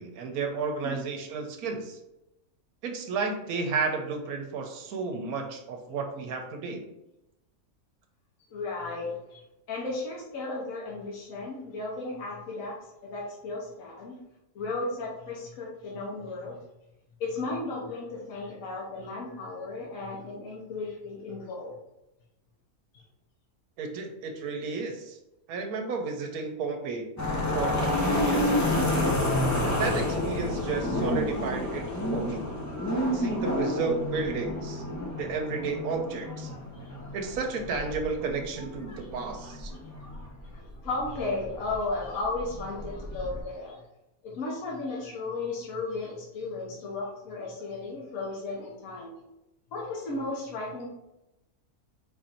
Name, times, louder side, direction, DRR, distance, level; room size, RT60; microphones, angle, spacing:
voice 1, 0.0-2.0 2.8-6.8 23.8-25.2 25.5-27.1 27.5-28.8 29.6-32.5 33.1-34.8 35.2-36.5 37.1-39.7, right 4 dB, 80° right, 3 dB, 1.2 m, -32 dB
voice 2, 8.5-9.4 9.7-12.7 13.0-14.2 14.5-16.6 17.2-21.7 39.4-39.5 40.8-43.8 44.2-49.2 49.7-50.9, left 3 dB, 65° left, -4 dB, 1.4 m, -35 dB
sound 1, 27.2-43.4, left 1 dB, 25° left, 0.3 m, -30 dB
4.4 x 2.6 x 4.3 m, 0.91 s
omnidirectional pair, 1.6 m